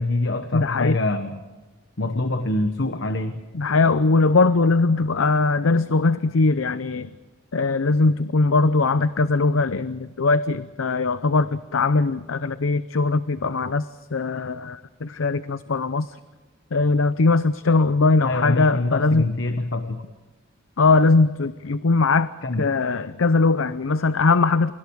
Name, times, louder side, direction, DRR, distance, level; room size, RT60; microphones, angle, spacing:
voice 1, 0.0-1.4 2.0-3.4 18.2-20.0 22.4-22.7, left 2 dB, 60° left, 8 dB, 1.2 m, -25 dB
voice 2, 0.5-1.0 3.5-7.1 7.5-13.9 14.1-16.2 16.7-19.3 20.8-22.3 22.6-24.7, left 3 dB, 80° left, 13 dB, 0.7 m, -20 dB
29.5 x 25.0 x 4.8 m, 1.2 s
head